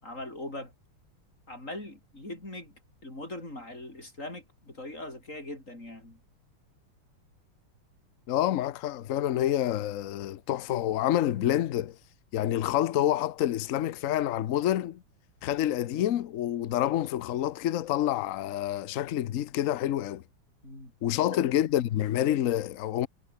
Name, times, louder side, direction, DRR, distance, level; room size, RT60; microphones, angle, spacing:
voice 1, 0.0-0.7 1.5-6.2 20.6-20.9 21.3-21.4, left 1 dB, 35° left, 8.3 m, -41 dB
voice 2, 8.3-12.0 12.3-15.0 15.4-20.2 21.0-23.1, left 12 dB, 80° left, 0.7 m, -28 dB
omnidirectional pair, 2.3 m